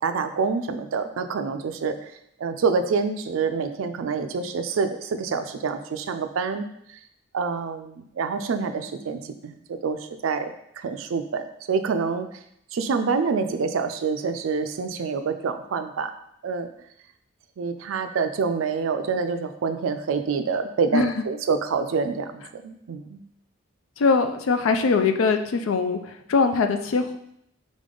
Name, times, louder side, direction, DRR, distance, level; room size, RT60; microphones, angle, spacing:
voice 1, 0.0-2.1 2.4-7.0 7.3-12.3 12.7-16.1 16.4-16.7 17.6-23.2, right 5 dB, 85° right, 8 dB, 0.4 m, -27 dB
voice 2, 24.0-27.2, left 4 dB, 90° left, 8 dB, 0.4 m, -22 dB
3.7 x 3.6 x 3.8 m, 0.73 s
head